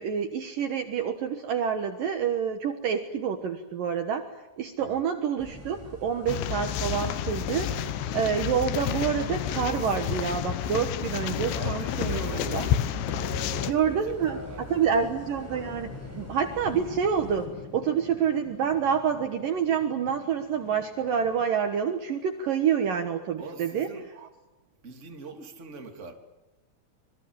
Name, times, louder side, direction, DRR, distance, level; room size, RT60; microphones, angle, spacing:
voice 1, 0.0-4.3 4.6-7.8 8.1-12.7 13.6-14.4 14.7-23.9, right 7 dB, 65° right, 6 dB, 2.6 m, -27 dB
sound 1, 5.4-17.5, left 1 dB, 5° right, 6.2 m, -43 dB
sound 2, 6.3-13.7, left 10 dB, 90° left, 3.4 m, -30 dB
voice 2, 11.5-12.9 13.1-14.8 23.4-24.1 24.8-26.1, right 4 dB, 20° right, 3 dB, 2.6 m, -43 dB
sound 3, 13.1-22.4, left 6 dB, 50° left, 1.4 m, -47 dB
26.0 x 23.5 x 8.9 m, 1.0 s
omnidirectional pair, 4.9 m